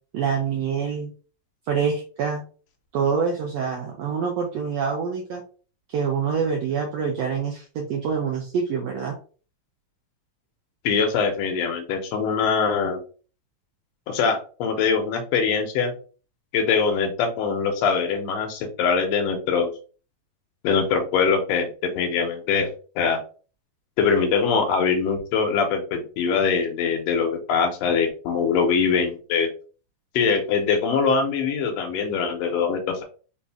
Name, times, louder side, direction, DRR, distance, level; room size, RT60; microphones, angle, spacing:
voice 1, 0.1-1.1 1.7-2.4 2.9-5.4 5.9-9.2, right 6 dB, 80° right, 1 dB, 1.5 m, -26 dB
voice 2, 10.8-13.0 14.1-15.9 16.5-19.7 20.6-22.7 22.9-23.2 24.0-29.5 30.1-33.0, left 5 dB, 75° left, 5 dB, 1.6 m, -23 dB
5.2 x 2.5 x 3.4 m, 0.38 s
omnidirectional pair, 3.8 m